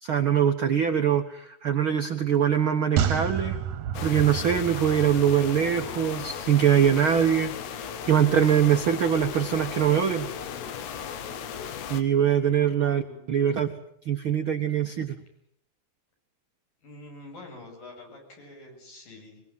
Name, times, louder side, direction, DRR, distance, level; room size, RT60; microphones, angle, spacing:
voice 1, 0.0-3.6 4.0-10.3 11.9-13.0 13.3-13.7 14.0-15.1, right 8 dB, 90° right, 6 dB, 1.1 m, -23 dB
sound 1, 3.0-6.4 6.7-6.8, right 8 dB, 60° right, 2.1 m, -30 dB
sound 2, 3.9-12.0, left 8 dB, 90° left, 3.6 m, -36 dB
voice 2, 12.4-13.3 16.8-19.4, left 1 dB, 60° left, 2 dB, 9.3 m, -46 dB
24.0 x 23.0 x 7.6 m, 0.72 s
omnidirectional pair, 4.5 m